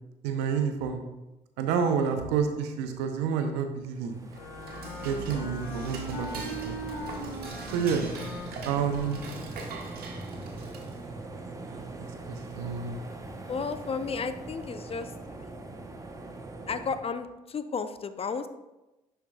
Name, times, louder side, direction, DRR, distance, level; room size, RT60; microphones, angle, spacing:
voice 1, 0.2-1.0 1.6-4.2 5.0-6.8 7.7-8.1 8.7-9.2 11.5-13.0, right 6 dB, 75° right, 7 dB, 0.7 m, -29 dB
sound 1, 3.9-17.0, right 2 dB, 20° right, 0.9 m, -42 dB
Dishes pots and pans / Cutlery silverware, 4.2-11.1, right 3 dB, 60° right, 1.3 m, -43 dB
Wind instrument woodwind instrument, 4.3-9.6, equal, 75° left, 1.0 m, -41 dB
voice 2, 13.5-15.1 15.4-15.5 16.7-18.5, left 5 dB, 35° left, 11 dB, 0.5 m, -33 dB
10.5 x 4.5 x 2.3 m, 1.0 s
hypercardioid pair, 50°, 18 cm